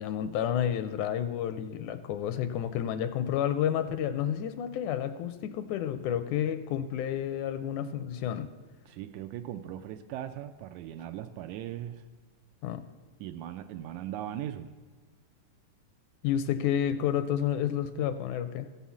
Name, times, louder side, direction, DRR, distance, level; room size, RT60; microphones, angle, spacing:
voice 1, 0.0-8.5 12.6-12.9 16.2-18.7, left 10 dB, 80° left, 11 dB, 1.8 m, -30 dB
voice 2, 8.9-12.0 13.2-14.7, right 11 dB, 80° right, 8 dB, 1.8 m, -39 dB
15.0 x 5.6 x 7.1 m, 1.4 s
omnidirectional pair, 3.7 m